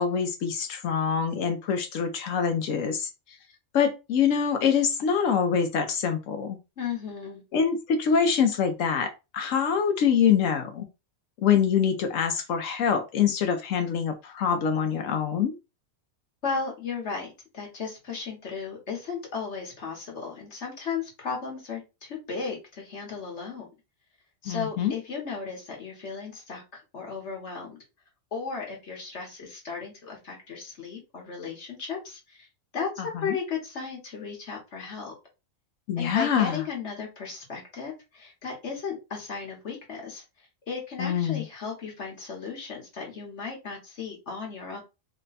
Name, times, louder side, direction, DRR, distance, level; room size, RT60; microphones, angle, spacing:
voice 1, 0.0-3.1 3.7-6.6 7.5-10.8 11.4-15.5 24.5-24.9 33.1-33.4 35.9-36.6 41.0-41.4, left 7 dB, 80° left, 1.0 m, -25 dB
voice 2, 6.8-7.4 16.4-23.7 24.4-27.8 28.3-32.5 32.7-32.9 33.2-35.1 36.0-44.8, left 5 dB, 60° left, 1.3 m, -35 dB
3.3 x 2.2 x 3.9 m
omnidirectional pair, 1.3 m